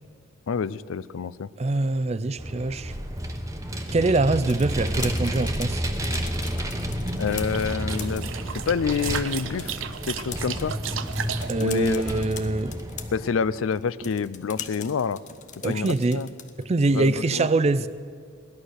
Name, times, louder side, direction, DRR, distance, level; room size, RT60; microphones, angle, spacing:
voice 1, 0.5-1.5 7.2-9.8 10.0-10.7 11.6-12.2 13.1-15.2 15.6-16.3 16.9-17.5, left 6 dB, 80° left, 0.4 m, -28 dB
voice 2, 1.6-2.9 3.9-5.8 11.5-12.7 15.6-16.2 16.6-17.9, right 2 dB, 30° right, 0.4 m, -24 dB
Vehicle, 2.4-13.3, equal, 15° right, 0.9 m, -31 dB
sound 1, 4.4-16.7, left 8 dB, 40° left, 0.8 m, -43 dB
sound 2, 7.1-11.5, right 8 dB, 75° right, 0.7 m, -34 dB
17.5 x 11.5 x 6.5 m
head